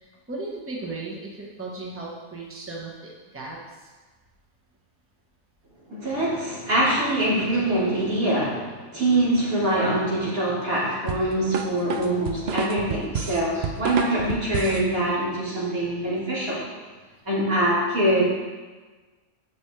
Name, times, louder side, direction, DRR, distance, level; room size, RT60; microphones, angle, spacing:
voice 1, 0.0-3.9, right 3 dB, 10° right, -3 dB, 1.2 m, -36 dB
voice 2, 5.9-16.6 17.2-18.3, right 1 dB, 85° right, -8 dB, 3.3 m, -24 dB
sound 1, 11.1-14.9, right 6 dB, 60° right, 0.8 m, -29 dB
10.5 x 6.5 x 3.4 m, 1.3 s
omnidirectional pair, 1.4 m